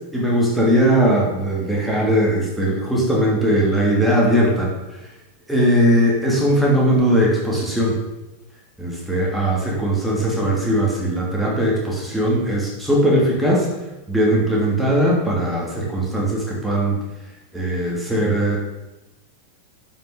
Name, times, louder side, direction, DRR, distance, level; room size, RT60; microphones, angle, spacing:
voice 1, 0.1-4.7 5.5-8.0 8.8-13.7 14.1-17.0 17.5-18.6, right 1 dB, 5° right, -4 dB, 3.0 m, -19 dB
11.0 x 6.1 x 5.1 m, 1.0 s
figure-of-eight pair, 90°, 0 cm